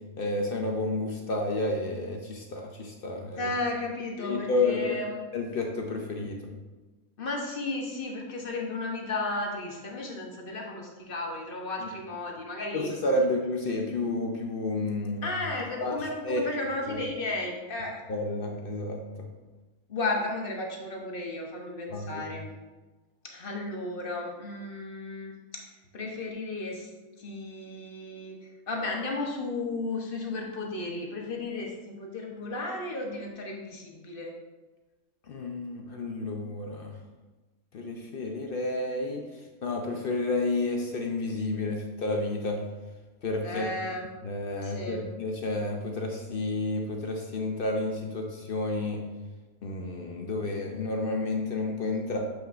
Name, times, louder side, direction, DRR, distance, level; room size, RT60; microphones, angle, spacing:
voice 1, 0.2-3.5 4.2-5.0 5.3-6.4 11.8-11.9 12.7-15.3 15.8-16.5 16.9-17.0 18.1-19.3 21.9-22.3 35.3-36.9 37.7-39.2 39.6-42.6 43.2-43.8 44.2-49.0 49.6-52.2, left 2 dB, 60° left, 2 dB, 0.6 m, -30 dB
voice 2, 3.4-5.2 7.2-12.9 15.2-18.0 19.9-22.5 23.2-25.6 25.9-26.9 27.2-28.4 28.7-34.3 43.4-44.0 44.6-45.0, left 2 dB, 40° left, 0 dB, 1.0 m, -34 dB
7.4 x 5.7 x 2.5 m, 1.2 s
omnidirectional pair, 1.6 m